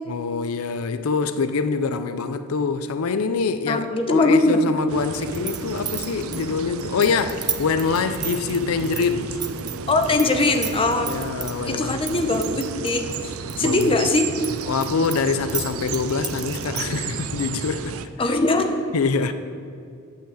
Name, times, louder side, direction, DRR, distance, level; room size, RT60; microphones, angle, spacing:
voice 1, 0.1-9.4 11.0-12.4 13.6-13.9 14.7-18.0 18.3-18.4 18.9-19.3, left 5 dB, 85° left, 0.5 m, -25 dB
voice 2, 3.7-4.6 9.9-11.1 11.7-13.3 13.6-14.3 18.2-18.7, left 2 dB, 25° left, 0.8 m, -21 dB
sound 1, 4.9-18.1, right 5 dB, 80° right, 0.5 m, -33 dB
sound 2, 5.1-10.3 10.5-11.5 12.1-13.8 14.2-17.0, right 7 dB, 20° right, 0.6 m, -31 dB
8.7 x 5.8 x 7.6 m
head